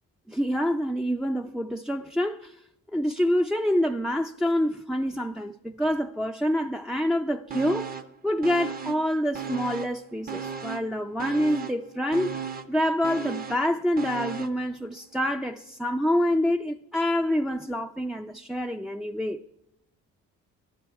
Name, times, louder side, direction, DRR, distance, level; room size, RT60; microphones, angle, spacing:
voice 1, 0.3-2.6 2.9-7.9 8.2-12.4 12.7-19.4, equal, ahead, 0.4 m, -27 dB
sound 1, 7.5-8.2 8.4-10.0 10.3-14.6 15.0-15.1, right 6 dB, 30° right, 0.8 m, -36 dB
12.0 x 11.5 x 4.6 m
cardioid pair, 90°, 30 cm